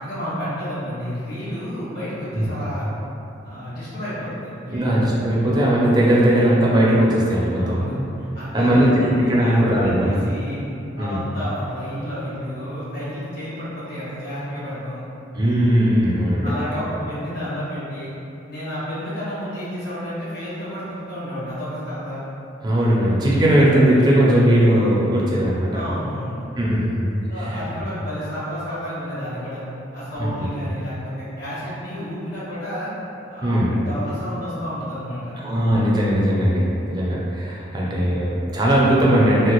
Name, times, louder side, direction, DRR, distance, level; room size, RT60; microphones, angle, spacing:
voice 1, 0.0-2.9 3.4-4.9 7.6-9.1 9.4-10.6 11.0-15.0 16.4-18.1 18.5-22.2 25.7-26.5 27.3-29.6 29.9-32.9 33.3-35.3 37.7-37.9, equal, 55° left, -11 dB, 1.4 m, -31 dB
voice 2, 4.7-7.8 8.5-10.1 11.0-11.2 15.3-16.5 22.6-25.8 26.6-27.0 27.4-27.6 30.2-30.3 33.4-33.7 35.4-39.5, right 1 dB, 20° right, -6 dB, 0.5 m, -18 dB
3.1 x 2.4 x 3.0 m, 2.8 s
head